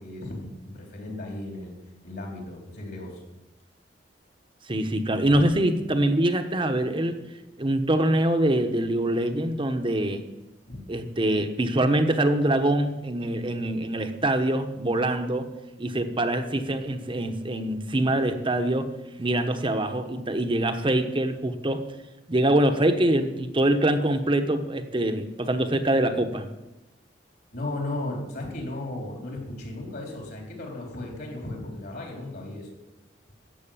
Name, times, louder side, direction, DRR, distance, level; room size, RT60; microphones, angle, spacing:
voice 1, 0.0-1.7 2.0-3.2 10.7-10.8 27.5-32.7, left 2 dB, 60° left, 0 dB, 3.5 m, -35 dB
voice 2, 4.7-7.2 7.6-10.2 10.9-15.5 15.8-18.9 19.2-21.8 22.3-26.5, right 1 dB, 30° right, 7 dB, 1.0 m, -24 dB
13.5 x 6.6 x 8.7 m, 0.99 s
head